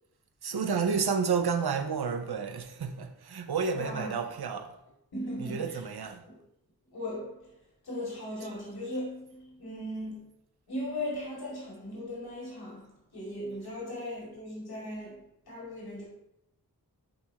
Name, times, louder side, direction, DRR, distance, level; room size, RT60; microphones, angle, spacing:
voice 1, 0.4-4.8 5.4-6.2, right 5 dB, 90° right, 0.7 m, -30 dB
voice 2, 3.7-4.3 5.1-5.8 6.3-6.4 6.9-7.6 7.8-10.2 10.7-16.0, left 1 dB, 80° left, 2.4 m, -38 dB
10.5 x 3.6 x 2.9 m
wide cardioid pair, 55°, 37 cm